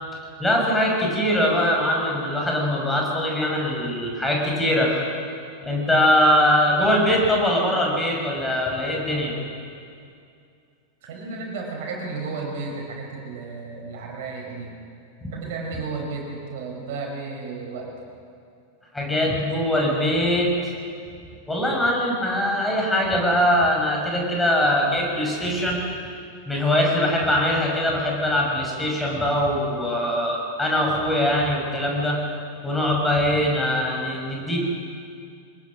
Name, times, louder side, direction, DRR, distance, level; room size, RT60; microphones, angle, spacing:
voice 1, 0.4-5.0 5.6-9.3 15.2-15.3 18.9-20.7 21.5-25.8 26.5-32.2 32.6-34.6, left 1 dB, 10° left, -1 dB, 6.0 m, -22 dB
voice 2, 11.0-14.8 15.3-18.1, right 4 dB, 50° right, 0 dB, 6.1 m, -33 dB
23.5 x 20.5 x 6.3 m, 2.4 s
figure-of-eight pair, 90°, 0 cm